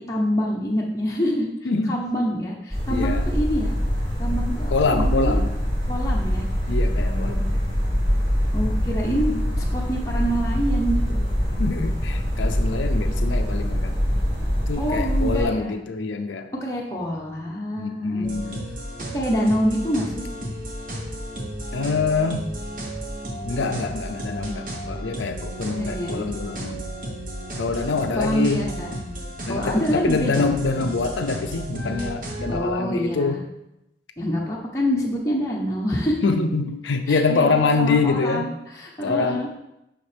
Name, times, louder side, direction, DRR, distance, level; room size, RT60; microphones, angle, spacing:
voice 1, 0.0-1.5 1.9-3.7 4.2-5.4 5.9-6.5 7.0-7.4 8.5-9.3 9.6-11.3 14.8-15.8 16.5-18.3 19.1-20.2 25.7-26.2 28.1-28.9 29.5-30.5 32.5-33.4 34.2-36.2 37.1-39.6, equal, 15° left, -4 dB, 0.8 m, -26 dB
voice 2, 1.7-2.0 2.9-3.2 4.7-5.5 6.7-7.4 9.1-9.4 11.6-13.9 14.7-16.5 17.8-18.7 21.7-22.5 23.4-26.8 27.6-28.7 29.5-33.4 36.2-38.5 39.0-39.6, left 4 dB, 90° left, 6 dB, 0.5 m, -25 dB
sound 1, 2.7-15.4, equal, 30° right, 2.8 m, -24 dB
sound 2, 18.2-32.6, right 1 dB, 45° right, 1.1 m, -33 dB
7.2 x 5.7 x 3.4 m, 0.86 s
head